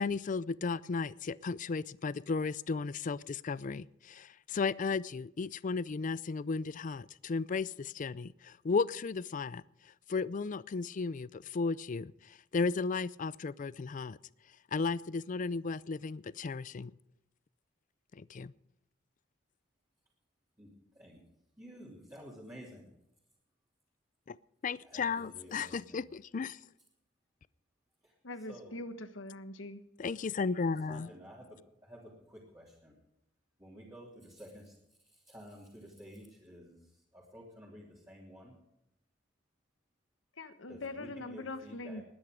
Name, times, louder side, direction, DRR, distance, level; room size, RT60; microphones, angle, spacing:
voice 1, 0.0-9.6 10.1-14.2 14.7-16.9 18.1-18.5 24.3-24.4 24.6-26.6 30.0-31.1, left 4 dB, 40° left, 20 dB, 0.4 m, -34 dB
voice 2, 20.6-21.2 21.6-22.8 24.8-26.1 28.0-28.1 28.5-28.7 30.9-33.0 33.6-34.8 35.0-38.5 40.7-42.0, equal, 15° right, -5 dB, 3.0 m, -52 dB
voice 3, 28.2-29.8 40.4-42.0, left 2 dB, 80° left, 10 dB, 1.3 m, -42 dB
20.0 x 10.0 x 5.1 m, 0.84 s
head